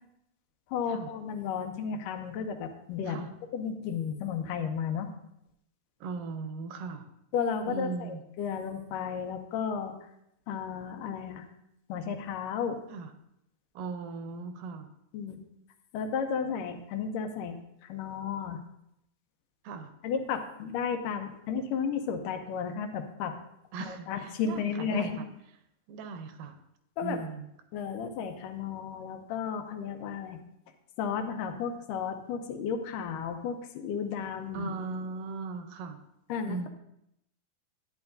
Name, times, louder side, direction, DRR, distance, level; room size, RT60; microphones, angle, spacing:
voice 1, 0.7-3.2 3.5-5.1 7.3-10.1 10.5-11.5 11.9-12.8 15.1-15.4 15.9-17.6 17.8-18.6 20.0-23.3 23.8-25.1 27.0-27.3 27.7-30.4 31.0-34.7 36.3-36.7, left 6 dB, 80° left, 6 dB, 2.3 m, -33 dB
voice 2, 6.0-7.1 7.7-8.2 12.9-13.1 13.8-14.9 19.6-19.9 23.7-25.3 25.9-26.6 27.0-27.5 34.5-36.0 36.5-36.7, right 4 dB, 85° right, 8 dB, 2.3 m, -38 dB
10.5 x 9.3 x 2.6 m, 0.79 s
omnidirectional pair, 3.9 m